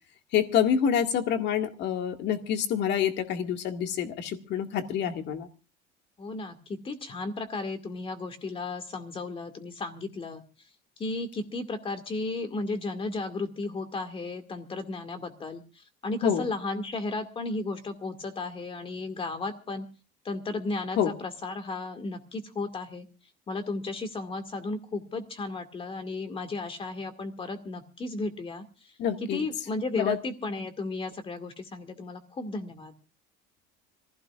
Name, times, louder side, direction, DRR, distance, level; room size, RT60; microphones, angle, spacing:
voice 1, 0.3-5.5 16.2-16.5 21.0-21.1 29.0-29.4 29.9-30.2, left 8 dB, 55° left, 6 dB, 2.0 m, -27 dB
voice 2, 6.2-10.4 11.0-19.9 20.2-23.1 23.5-28.9 29.2-32.9, left 3 dB, 25° left, 8 dB, 2.2 m, -34 dB
26.0 x 16.0 x 2.5 m, 0.33 s
cardioid pair, 130°, 21 cm